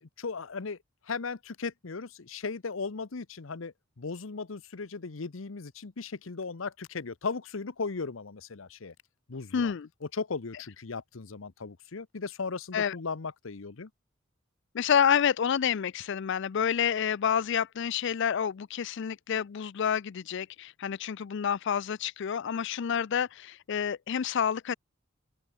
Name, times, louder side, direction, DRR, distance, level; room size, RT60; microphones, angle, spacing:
voice 1, 0.0-0.8 1.1-8.9 9.3-9.7 10.1-13.9, left 4 dB, 90° left, 0.9 m, -37 dB
voice 2, 9.5-9.9 12.7-13.0 14.7-24.8, left 8 dB, 65° left, 0.4 m, -28 dB
open air
head